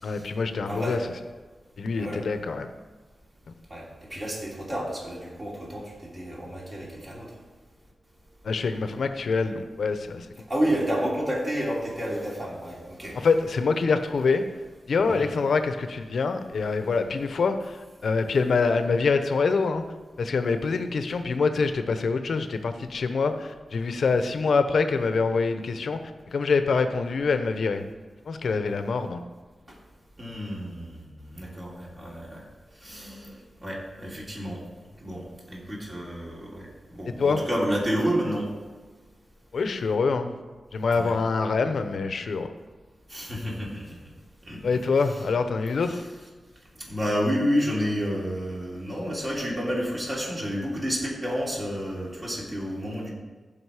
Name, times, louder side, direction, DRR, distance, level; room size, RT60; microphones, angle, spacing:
voice 1, 0.0-1.0 1.8-2.7 8.4-10.5 13.1-14.4 14.9-19.8 20.2-27.9 28.3-29.2 37.2-37.4 39.5-40.3 40.7-42.5 44.6-46.0, left 4 dB, 70° left, 8 dB, 0.8 m, -25 dB
voice 2, 0.7-1.0 2.0-2.2 3.7-7.3 10.5-13.3 15.1-15.3 30.2-32.4 32.8-34.6 35.0-38.5 40.9-41.1 43.1-44.0 44.5-44.8 45.9-46.0 46.8-53.1, equal, 30° right, -4 dB, 3.0 m, -30 dB
15.0 x 5.3 x 4.9 m, 1.3 s
wide cardioid pair, 110°, 0 cm